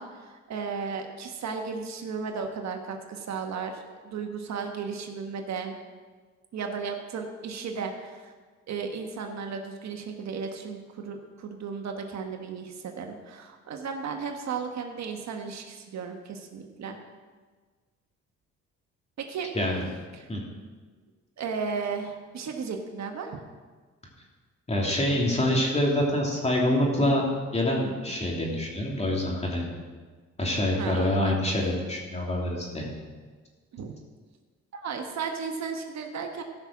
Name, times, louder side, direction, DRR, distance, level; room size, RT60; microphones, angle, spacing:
voice 1, 0.0-5.7 6.5-8.3 8.7-17.0 19.2-19.5 20.1-20.3 21.4-23.4 30.8-31.4 33.7-34.0 34.7-36.4, right 5 dB, 65° right, 4 dB, 1.3 m, -35 dB
voice 2, 24.7-29.7 30.4-32.9, left 1 dB, 20° left, -2 dB, 3.0 m, -26 dB
14.5 x 6.0 x 6.2 m, 1.5 s
cardioid pair, 90°, 30 cm